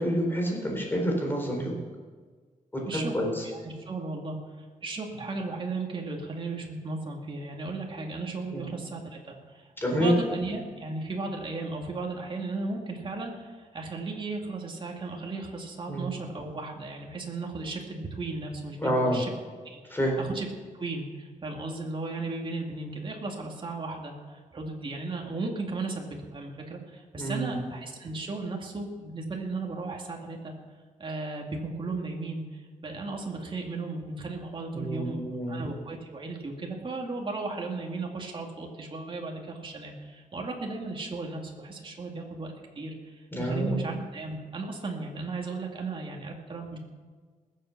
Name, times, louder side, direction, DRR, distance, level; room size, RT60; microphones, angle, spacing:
voice 1, 0.0-1.8 2.9-3.4 8.5-8.7 9.8-10.1 15.9-16.1 18.8-19.2 19.9-20.2 27.2-27.6 34.7-35.6 43.3-43.8, equal, 15° left, -1 dB, 4.0 m, -28 dB
voice 2, 2.9-4.4 4.8-19.3 19.6-20.5 20.7-30.5 31.0-46.8, right 3 dB, 40° right, 1 dB, 2.3 m, -35 dB
20.0 x 7.9 x 5.8 m, 1.5 s
wide cardioid pair, 135°, 13 cm